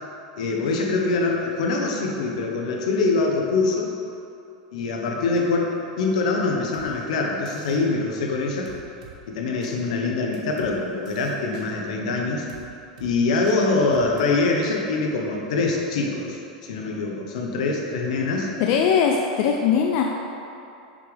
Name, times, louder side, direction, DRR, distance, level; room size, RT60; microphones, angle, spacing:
voice 1, 0.4-3.9 4.7-8.7 9.3-12.4 13.0-18.5, left 3 dB, 75° left, 0 dB, 1.0 m, -24 dB
sound 1, 6.7-6.9 7.5-7.8 8.7-9.2 9.6-9.7 10.3-10.7 11.1-11.7 12.5-12.6 13.0-13.1 13.5-13.6 13.9-14.2, right 6 dB, 70° right, 1.1 m, -45 dB
voice 2, 18.6-20.0, left 7 dB, 55° left, 1 dB, 0.5 m, -20 dB
6.7 x 6.2 x 3.4 m, 2.7 s
hypercardioid pair, 120°, 4 cm